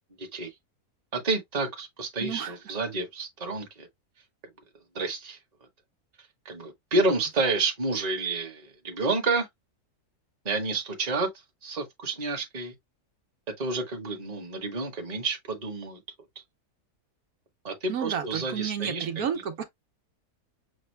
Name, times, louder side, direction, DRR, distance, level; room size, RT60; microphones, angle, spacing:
voice 1, 0.2-0.5 1.1-3.9 4.9-5.4 6.4-9.5 10.4-11.3 11.6-12.7 13.5-16.0 16.3-16.4 17.6-19.2, right 3 dB, 30° right, 1.2 m, -29 dB
voice 2, 2.2-2.6 17.9-19.6, right 8 dB, 70° right, 1.3 m, -31 dB
6.4 x 2.3 x 3.2 m
omnidirectional pair, 1.6 m